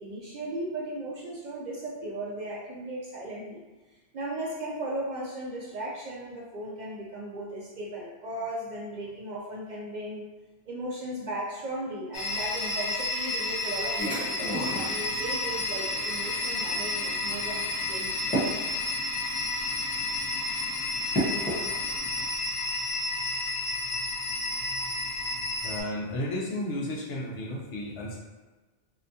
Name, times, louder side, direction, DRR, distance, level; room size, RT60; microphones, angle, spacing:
voice 1, 0.0-3.6 4.1-10.3 10.7-18.2, right 1 dB, 55° right, -3 dB, 0.5 m, -36 dB
sound 1, 12.1-25.8, left 2 dB, 55° left, 0.6 m, -31 dB
sound 2, 14.0-22.2, right 1 dB, 10° left, 0.8 m, -36 dB
voice 2, 25.6-28.2, left 1 dB, 90° left, -2 dB, 1.1 m, -33 dB
3.3 x 2.8 x 2.7 m, 1.2 s
omnidirectional pair, 1.1 m